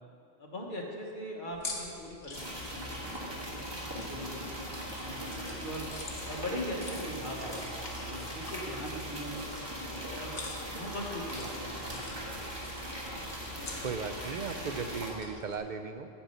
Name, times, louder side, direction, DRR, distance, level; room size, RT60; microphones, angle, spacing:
voice 1, 0.4-2.4 2.7-5.9 6.3-10.4 10.7-12.7, equal, 50° left, -1 dB, 1.5 m, -41 dB
sound 1, 1.5-15.6, left 3 dB, 70° left, 1.4 m, -47 dB
sound 2, 2.3-15.1, equal, 25° right, 1.6 m, -39 dB
voice 2, 13.8-16.1, right 5 dB, 55° right, 8 dB, 0.6 m, -36 dB
8.8 x 5.5 x 8.0 m, 2.6 s
omnidirectional pair, 1.1 m